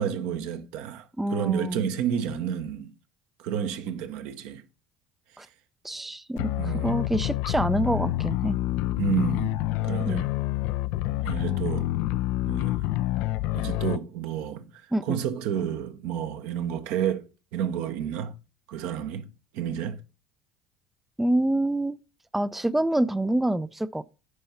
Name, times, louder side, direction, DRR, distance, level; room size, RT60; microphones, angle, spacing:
voice 1, 0.0-2.9 3.4-4.6 6.5-7.0 9.0-10.3 11.2-11.9 12.5-12.9 13.5-14.7 15.0-17.2 17.5-18.3 18.7-19.3 19.5-20.0, right 9 dB, 65° right, 1.0 m, -30 dB
voice 2, 1.2-1.9 5.4-5.5 5.8-6.5 6.8-8.6 10.1-10.2 14.9-15.2 21.2-22.0 22.3-24.0, right 1 dB, 5° right, 0.4 m, -26 dB
sound 1, 6.4-14.0, left 16 dB, 60° left, 0.4 m, -27 dB
9.7 x 5.5 x 4.3 m
figure-of-eight pair, 65°, 3 cm